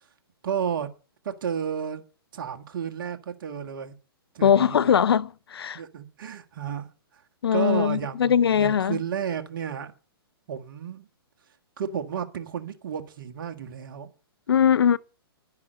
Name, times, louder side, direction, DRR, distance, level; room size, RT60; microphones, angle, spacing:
voice 1, 0.4-0.9 1.2-2.0 2.3-3.9 4.3-4.9 5.7-6.9 7.5-9.9 10.5-11.1 11.8-14.1, right 8 dB, 55° right, 1.8 m, -32 dB
voice 2, 4.4-5.8 7.4-9.0 14.5-15.0, left 8 dB, 75° left, 0.8 m, -21 dB
10.5 x 10.5 x 6.6 m
hypercardioid pair, 130°, 13 cm